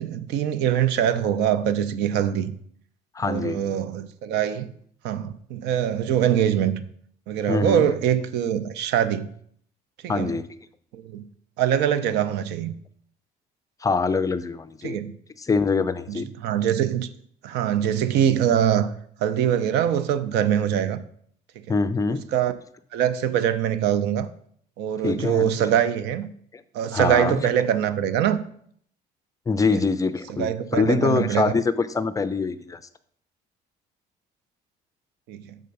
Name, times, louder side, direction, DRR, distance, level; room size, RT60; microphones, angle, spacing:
voice 1, 0.0-2.5 3.2-4.7 5.0-6.7 7.3-9.3 10.0-10.3 10.9-11.2 11.6-12.7 14.8-15.1 16.1-17.1 17.4-18.9 19.2-21.0 22.3-22.5 22.9-24.3 24.8-26.3 26.7-28.4 30.3-31.5 35.3-35.6, right 9 dB, 90° right, 0.5 m, -23 dB
voice 2, 3.1-3.6 7.5-7.9 10.1-10.5 13.8-15.0 15.4-16.3 21.7-22.2 25.0-25.6 26.5-26.6 26.9-27.5 29.5-32.8, left 4 dB, 20° left, 0.4 m, -24 dB
6.7 x 3.7 x 5.3 m
cardioid pair, 110°, 17 cm